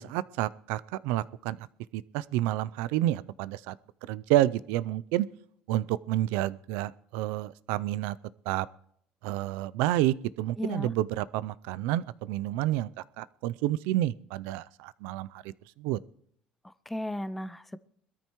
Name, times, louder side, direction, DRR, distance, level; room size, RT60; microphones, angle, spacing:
voice 1, 0.0-1.7 1.9-3.8 4.0-5.3 5.7-8.2 8.5-8.7 9.2-12.9 13.2-16.0, right 14 dB, 85° right, 0.4 m, -29 dB
voice 2, 10.6-10.9 16.6-17.8, left 1 dB, 5° left, 0.4 m, -35 dB
21.5 x 13.5 x 3.1 m
cardioid pair, 130°, 3 cm